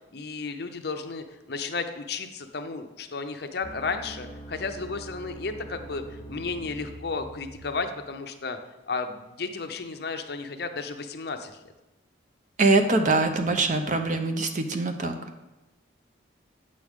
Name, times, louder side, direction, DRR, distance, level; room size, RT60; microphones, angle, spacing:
voice 1, 0.1-8.6 8.9-11.6, left 4 dB, 55° left, 7 dB, 0.6 m, -33 dB
sound 1, 3.6-8.0, right 1 dB, 30° left, 1.2 m, -43 dB
voice 2, 12.6-15.2, right 3 dB, 40° right, 6 dB, 0.6 m, -23 dB
8.5 x 6.3 x 3.6 m, 1.1 s
head